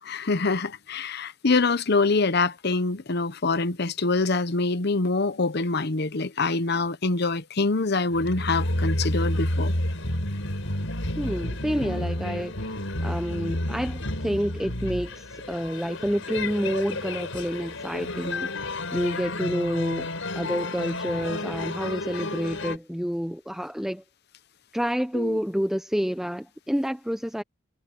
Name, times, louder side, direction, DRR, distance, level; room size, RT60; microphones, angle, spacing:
voice 1, 0.0-9.7 25.1-25.4, left 3 dB, 55° left, 0.9 m, -25 dB
sound 1, 8.1-22.8, left 1 dB, 80° left, 5.2 m, -30 dB
voice 2, 11.2-18.5 18.9-24.0 24.7-27.4, equal, ahead, 0.7 m, -29 dB
head